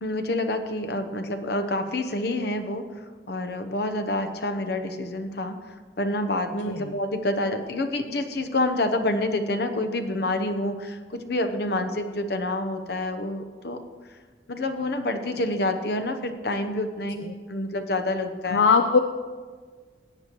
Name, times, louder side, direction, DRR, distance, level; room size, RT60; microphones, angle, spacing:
voice 1, 0.0-13.8 14.5-18.6, left 1 dB, 65° left, 8 dB, 0.9 m, -28 dB
voice 2, 18.5-19.0, left 5 dB, 80° left, 7 dB, 0.4 m, -20 dB
16.5 x 8.7 x 3.0 m, 1.5 s
head